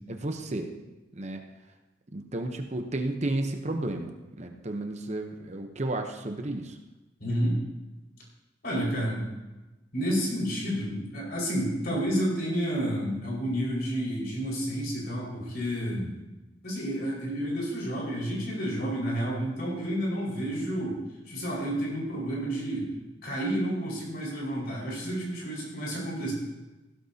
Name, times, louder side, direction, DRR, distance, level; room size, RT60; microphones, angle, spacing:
voice 1, 0.1-0.7 1.1-1.4 2.1-6.8, right 2 dB, 35° right, 5 dB, 0.9 m, -32 dB
voice 2, 7.2-7.5 8.6-9.2 9.9-16.2 16.6-21.0 21.2-22.9 23.2-26.3, equal, 55° left, -4 dB, 5.1 m, -30 dB
15.5 x 13.0 x 2.8 m, 1.1 s
head